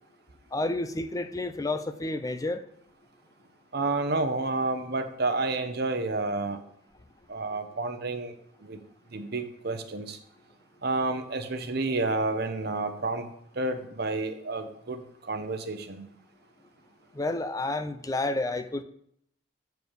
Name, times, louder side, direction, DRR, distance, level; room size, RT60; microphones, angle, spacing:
voice 1, 0.5-2.6 17.1-18.8, left 2 dB, 20° left, 11 dB, 0.4 m, -30 dB
voice 2, 3.7-6.6 7.3-8.3 8.6-8.8 9.1-10.2 10.8-13.3 13.5-16.1, right 3 dB, 55° right, 8 dB, 0.8 m, -30 dB
7.1 x 4.6 x 6.5 m, 0.70 s
head